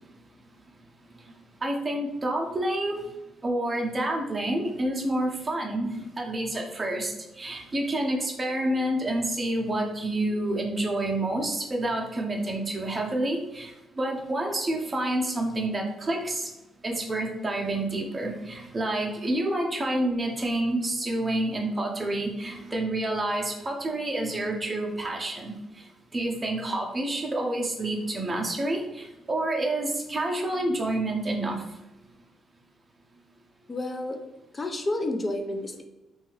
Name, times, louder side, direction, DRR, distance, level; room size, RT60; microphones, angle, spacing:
voice 1, 1.6-3.0 3.4-16.5 16.8-25.5 26.1-31.6, right 1 dB, 25° right, 0 dB, 0.7 m, -28 dB
voice 2, 33.7-34.2 34.5-35.8, left 1 dB, 25° left, 6 dB, 0.4 m, -30 dB
2.7 x 2.4 x 3.0 m, 0.96 s
cardioid pair, 90°, 0 cm